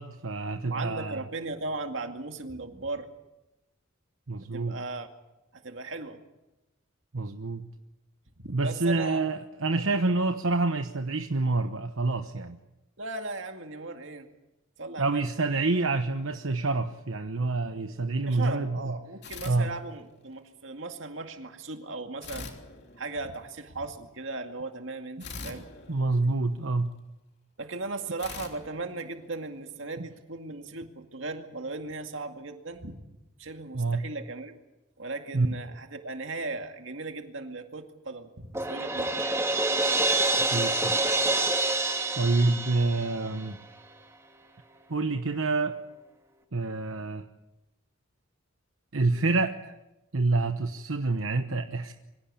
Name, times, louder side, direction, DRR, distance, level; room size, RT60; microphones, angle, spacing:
voice 1, 0.0-1.2 4.3-4.8 7.1-7.7 8.5-12.6 15.0-18.9 19.4-19.7 25.9-26.9 33.7-34.0 35.3-35.5 40.5-41.0 42.2-43.6 44.9-45.8 46.5-47.3 48.9-49.7 50.1-51.9, right 3 dB, 80° right, 7 dB, 1.1 m, -27 dB
voice 2, 0.7-3.1 4.5-5.1 5.5-6.2 8.4-9.2 9.9-10.1 13.0-14.3 14.8-15.3 18.3-22.5 23.0-25.7 27.6-33.1 33.4-34.5 35.0-39.4, right 3 dB, 65° right, 5 dB, 2.2 m, -37 dB
sound 1, 19.2-20.4 22.2-23.6 25.2-26.9 28.2-29.7, left 4 dB, 55° left, 3.2 m, -44 dB
Crash cymbal, 38.5-43.5, right 2 dB, 15° right, 2.1 m, -27 dB
24.5 x 16.5 x 8.5 m, 0.99 s
head